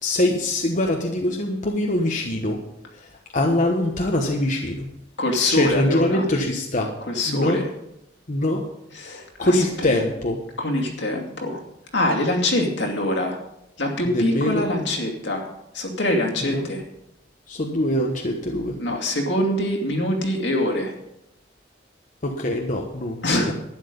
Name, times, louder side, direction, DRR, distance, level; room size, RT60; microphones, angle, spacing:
voice 1, 0.0-2.6 2.9-4.9 5.4-6.9 7.3-7.6 8.3-8.6 9.4-10.4 14.1-14.6 16.5-16.7 17.5-18.8 22.2-23.5, left 1 dB, 45° left, 1 dB, 1.2 m, -23 dB
voice 2, 5.2-6.2 7.0-7.7 8.9-10.0 10.6-11.6 11.9-13.4 13.8-15.4 15.7-16.8 18.8-20.9 23.2-23.5, left 1 dB, 70° left, 1 dB, 2.5 m, -24 dB
12.0 x 10.0 x 5.4 m, 0.83 s
head